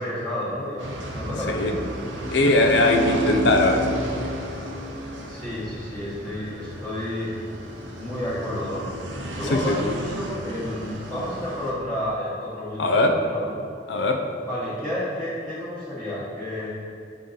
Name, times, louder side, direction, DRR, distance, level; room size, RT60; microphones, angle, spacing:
voice 1, 0.0-1.8 5.3-7.3 8.0-8.9 9.3-13.5 14.4-16.7, left 1 dB, 10° left, -12 dB, 1.2 m, -31 dB
sound 1, 0.8-11.7, equal, 75° right, 0.8 m, -32 dB
voice 2, 2.3-4.0 9.5-9.8 12.8-13.1 13.9-14.2, left 2 dB, 65° left, 4 dB, 0.5 m, -20 dB
6.7 x 3.8 x 3.9 m, 2.5 s
head